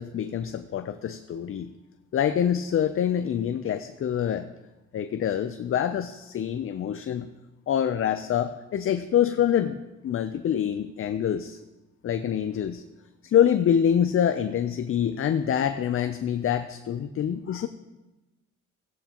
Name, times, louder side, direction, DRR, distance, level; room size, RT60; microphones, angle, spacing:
voice 1, 0.0-1.7 2.1-4.5 4.9-7.3 7.7-11.6 12.0-12.8 13.3-17.7, left 9 dB, 45° left, 9 dB, 0.6 m, -26 dB
16.5 x 9.1 x 3.0 m, 1.1 s
cardioid pair, 90°, 30 cm